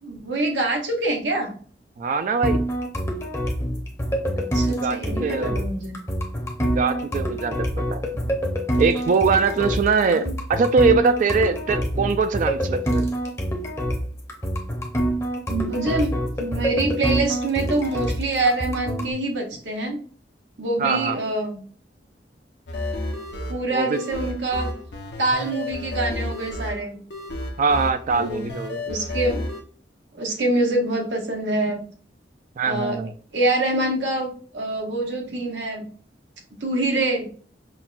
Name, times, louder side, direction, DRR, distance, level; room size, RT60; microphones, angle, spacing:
voice 1, 0.0-1.5 4.4-6.0 10.0-10.3 15.5-20.0 20.6-21.6 23.5-24.7 25.2-27.0 28.1-28.4 28.8-29.4 30.1-31.9 32.6-33.0 33.3-35.8 36.6-37.3, right 2 dB, 85° right, 1 dB, 1.0 m, -25 dB
voice 2, 2.0-2.6 4.5-5.7 6.6-8.0 8.8-13.1 20.8-21.2 23.7-24.0 27.6-28.8 32.6-33.1, right 4 dB, 45° right, 9 dB, 0.3 m, -22 dB
sound 1, 2.4-19.1, equal, 15° left, 0.7 m, -26 dB
sound 2, 22.7-29.6, left 1 dB, 70° left, 0.7 m, -31 dB
5.6 x 2.2 x 2.4 m, 0.43 s
head